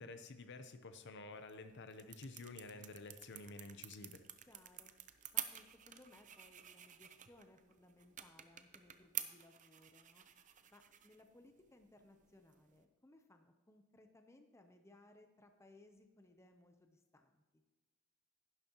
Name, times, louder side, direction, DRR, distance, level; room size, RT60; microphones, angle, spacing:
voice 1, 0.0-4.2, left 3 dB, 55° left, 9 dB, 0.8 m, -51 dB
sound 1, 1.3-12.9, right 11 dB, 35° right, 0.6 m, -50 dB
voice 2, 4.5-4.9 5.3-10.2 10.7-17.6, left 2 dB, 15° left, 6 dB, 0.7 m, -64 dB
11.0 x 11.0 x 3.0 m, 1.2 s
head